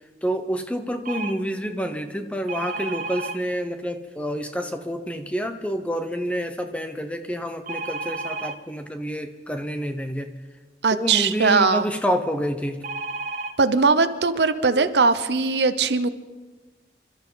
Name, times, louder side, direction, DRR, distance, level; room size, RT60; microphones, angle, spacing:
voice 1, 0.2-10.3 10.9-12.8, equal, 5° left, 7 dB, 0.8 m, -28 dB
sound 1, 1.0-1.3 2.5-3.4 7.7-8.5 12.8-13.5 14.3-14.4 14.7-14.9, right 3 dB, 45° right, 0.9 m, -31 dB
voice 2, 10.8-11.9 13.6-16.1, right 4 dB, 80° right, 11 dB, 0.8 m, -20 dB
27.5 x 13.0 x 4.0 m, 1.3 s
head